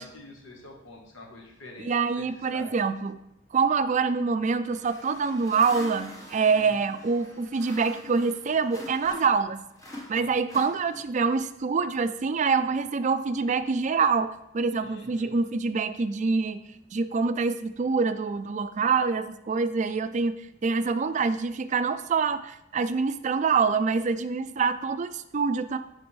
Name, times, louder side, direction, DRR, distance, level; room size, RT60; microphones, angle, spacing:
voice 1, 0.0-2.2 2.5-2.7 6.7-6.9 10.1-10.3 14.7-15.3, left 2 dB, 75° left, 0 dB, 1.3 m, -47 dB
voice 2, 1.8-3.2 3.5-9.6 10.1-16.6 16.9-20.3 20.6-25.8, right 5 dB, 35° right, 11 dB, 0.4 m, -25 dB
sound 1, 4.7-9.5 9.8-11.2, left 1 dB, 20° left, 1.2 m, -44 dB
11.0 x 4.4 x 3.2 m, 0.80 s
head